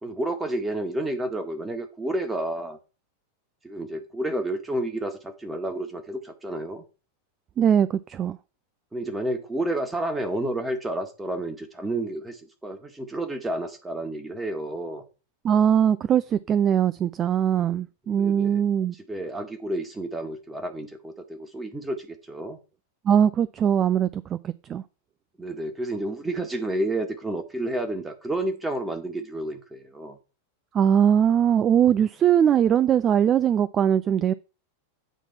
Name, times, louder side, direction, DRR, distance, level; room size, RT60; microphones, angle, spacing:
voice 1, 0.0-2.8 3.6-6.8 8.9-15.0 18.1-18.6 19.1-22.6 25.4-30.2, right 1 dB, 10° right, 1.7 m, -30 dB
voice 2, 7.6-8.4 15.4-18.9 23.0-24.8 30.7-34.3, right 9 dB, 25° right, 0.4 m, -21 dB
9.0 x 4.1 x 5.7 m
figure-of-eight pair, 90°, 0 cm